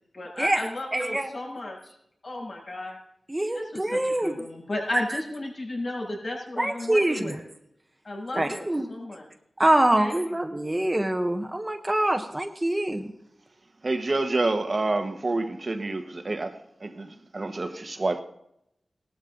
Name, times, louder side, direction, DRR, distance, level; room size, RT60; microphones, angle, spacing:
voice 1, 0.1-2.0 2.2-3.0 3.5-7.4 8.0-9.3 10.0-10.4, left 1 dB, 60° left, 7.0 m, -34 dB
voice 2, 0.9-1.3 3.3-4.3 6.6-7.3 8.3-8.9 9.6-13.1, right 1 dB, 20° right, 1.2 m, -24 dB
voice 3, 13.8-16.5 16.8-18.2, right 2 dB, 40° right, 1.3 m, -28 dB
18.0 x 12.5 x 3.9 m
wide cardioid pair, 85°, 0 cm